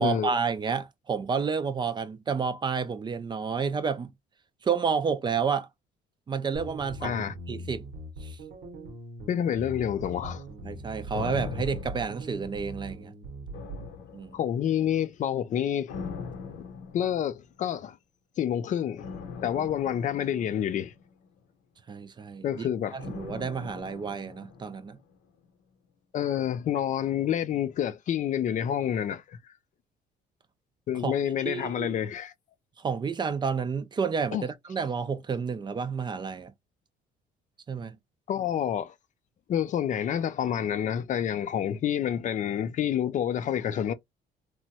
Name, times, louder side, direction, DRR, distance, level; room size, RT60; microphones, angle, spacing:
voice 1, 0.0-4.1 4.6-5.7 6.3-7.9 8.2-8.4 10.6-13.1 14.1-14.3 21.9-22.7 22.9-25.0 31.0-31.1 31.4-31.9 32.8-36.5 37.7-38.0, right 6 dB, 25° right, 0.4 m, -30 dB
sound 1, 6.5-13.9, right 1 dB, 75° right, 0.9 m, -41 dB
voice 2, 7.0-7.3 9.3-10.4 14.3-15.9 16.6-16.7 16.9-18.0 18.4-19.1 19.4-20.9 22.4-23.0 26.1-29.4 30.9-32.3 34.3-34.4 38.3-38.9 39.5-43.9, left 9 dB, 45° left, 0.4 m, -28 dB
sound 2, 11.1-13.0 13.5-14.8 15.9-17.6 19.0-21.4 23.0-25.2 25.4-25.5, left 5 dB, 85° left, 0.8 m, -41 dB
3.0 x 2.2 x 2.7 m
cardioid pair, 110°, 17 cm